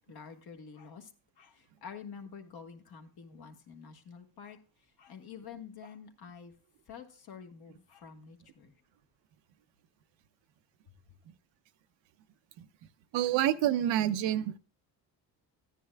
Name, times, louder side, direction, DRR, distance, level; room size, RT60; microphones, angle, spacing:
voice 1, 0.1-1.1 1.4-6.5 6.9-8.7, left 6 dB, 55° left, 5 dB, 1.6 m, -48 dB
voice 2, 13.1-14.6, right 12 dB, 85° right, 11 dB, 0.8 m, -27 dB
13.5 x 10.0 x 2.3 m, 0.36 s
cardioid pair, 105°, 44 cm